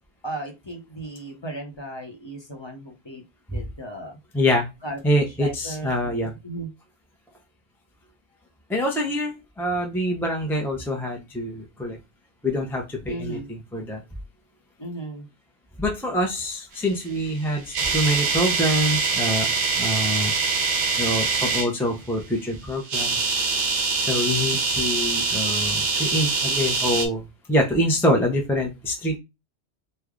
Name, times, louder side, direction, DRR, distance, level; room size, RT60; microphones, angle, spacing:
voice 1, 0.2-3.2 3.5-4.1 4.8-5.9 6.4-6.7 13.1-13.5 14.8-15.3, right 2 dB, 25° left, 1 dB, 0.8 m, -35 dB
voice 2, 4.3-4.7 5.0-6.3 8.7-12.0 12.4-14.0 15.8-19.5 19.8-20.3 21.0-23.3 24.0-29.2, equal, 5° left, 1 dB, 0.4 m, -25 dB
sound 1, 17.3-21.7 22.8-27.1, right 4 dB, 80° right, 1.0 m, -24 dB
3.1 x 2.2 x 3.7 m, 0.23 s
omnidirectional pair, 1.2 m